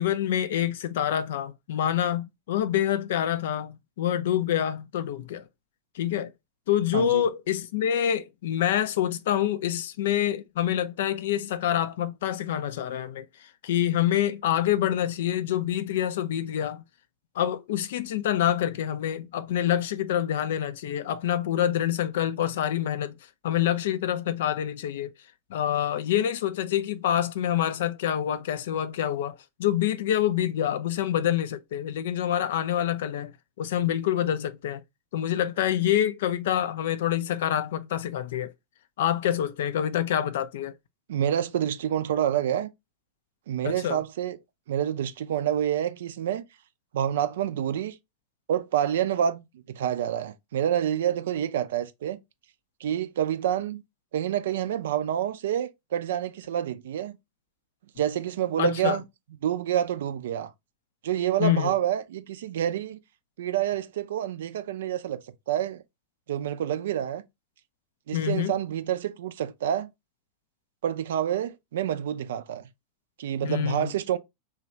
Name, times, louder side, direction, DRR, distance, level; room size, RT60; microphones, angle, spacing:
voice 1, 0.0-5.4 6.0-6.3 6.7-13.3 13.6-16.8 17.4-23.2 23.4-25.1 25.5-34.8 35.1-38.5 39.0-40.7 43.6-44.0 58.6-59.0 61.4-61.7 68.1-68.5 73.4-73.9, left 11 dB, 55° left, 0.4 m, -26 dB
voice 2, 6.9-7.2 41.1-42.7 43.5-44.4 44.7-46.4 46.9-48.0 48.5-52.2 52.8-53.8 54.1-57.2 58.0-59.0 59.4-60.5 61.0-63.0 63.4-65.2 65.5-65.8 66.3-67.2 68.1-69.9 70.8-72.7 73.2-74.2, right 10 dB, 60° right, 0.4 m, -28 dB
3.1 x 2.3 x 3.1 m
figure-of-eight pair, 90°, 0 cm